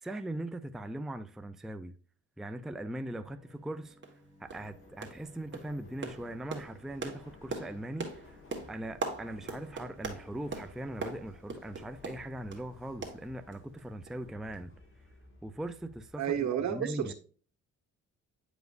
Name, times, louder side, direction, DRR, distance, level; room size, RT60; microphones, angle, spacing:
voice 1, 0.0-1.9 2.4-4.0 4.4-8.4 8.7-14.7 15.4-17.1, right 1 dB, ahead, 0.4 m, -40 dB
Bowed string instrument, 3.0-10.5, right 1 dB, 25° left, 2.1 m, -59 dB
sound 1, 3.5-3.6 4.0-4.2 4.5-4.7 5.0-5.3 5.5-12.7 13.0-13.8 14.1-14.2 14.5-14.6, right 3 dB, 40° right, 1.6 m, -41 dB
Subway metro underground, 4.4-16.4, left 3 dB, 45° left, 2.0 m, -56 dB
voice 2, 16.2-17.1, right 9 dB, 65° right, 1.3 m, -31 dB
9.2 x 5.0 x 2.5 m
cardioid pair, 90°, 30 cm